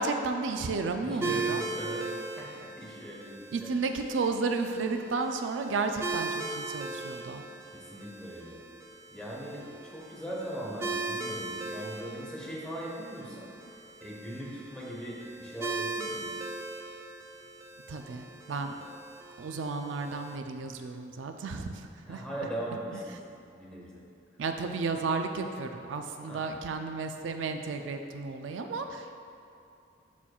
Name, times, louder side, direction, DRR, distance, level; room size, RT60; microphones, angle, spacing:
voice 1, 0.0-1.6 3.5-7.4 17.9-18.7 19.4-21.8 22.1-22.2 24.4-29.2, right 4 dB, 85° right, 6 dB, 0.4 m, -32 dB
voice 2, 1.0-3.7 7.7-8.6 9.1-13.5 14.0-16.3 22.1-24.0 26.2-26.5, right 1 dB, 5° left, -5 dB, 1.1 m, -40 dB
sound 1, 1.2-20.4, right 3 dB, 15° right, 0.3 m, -39 dB
11.5 x 4.4 x 2.4 m, 2.6 s
head